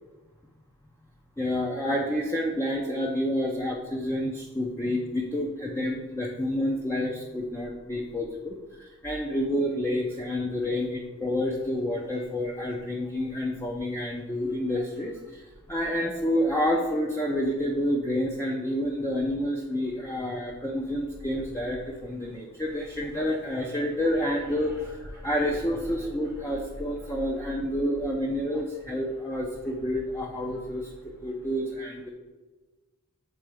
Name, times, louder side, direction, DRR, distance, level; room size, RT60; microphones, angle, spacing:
voice 1, 1.4-15.4 15.7-30.9 31.2-32.1, left 1 dB, 10° left, -1 dB, 0.5 m, -29 dB
7.6 x 3.8 x 4.8 m, 1.2 s
head